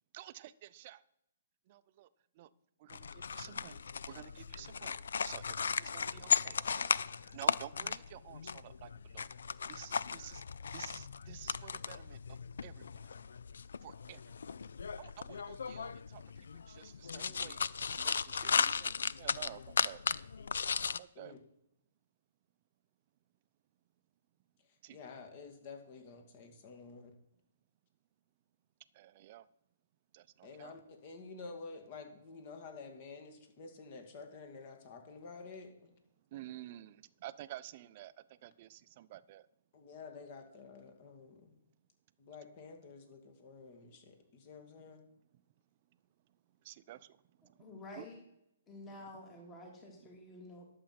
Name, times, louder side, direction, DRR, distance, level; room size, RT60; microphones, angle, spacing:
voice 1, 0.1-1.0 1.7-2.1 2.4-2.5 2.8-5.0 5.2-6.9 7.3-9.3 9.7-10.4 10.7-12.2 12.6-13.1 13.8-14.6 15.0-16.2 16.7-17.6 17.9-20.0 21.0-21.4 24.8-25.0 28.9-29.5 30.1-30.7 36.3-38.1 38.4-39.5 46.6-47.1 47.9-48.1 48.8-48.9, right 14 dB, 40° right, 15 dB, 0.6 m, -51 dB
sound 1, 2.9-21.0, left 6 dB, 80° left, 0.4 m, -36 dB
voice 2, 24.6-27.1 30.4-36.0 39.7-41.6 42.2-45.0, left 4 dB, 40° left, 5 dB, 2.2 m, -50 dB
voice 3, 47.6-48.2 48.7-50.8, left 2 dB, 20° left, 1 dB, 2.2 m, -50 dB
11.5 x 7.5 x 5.9 m, 0.81 s
hypercardioid pair, 145°, 0 cm